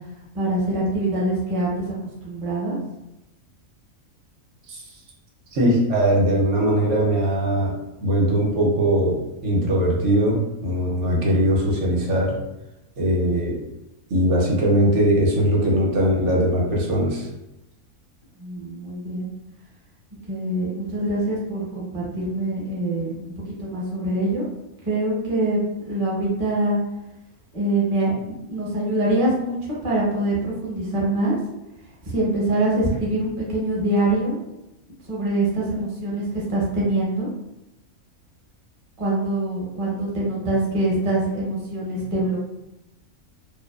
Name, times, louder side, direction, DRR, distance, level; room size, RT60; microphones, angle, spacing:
voice 1, 0.3-1.9 2.2-2.8 18.4-19.3 20.3-23.3 23.6-24.4 24.8-26.8 27.5-31.4 32.0-34.5 35.0-37.3 39.0-42.4, right 1 dB, 35° right, -5 dB, 0.6 m, -24 dB
voice 2, 5.5-12.3 13.0-13.6 14.1-17.3, equal, 65° right, -3 dB, 0.9 m, -20 dB
2.6 x 2.2 x 2.2 m, 0.92 s
omnidirectional pair, 1.5 m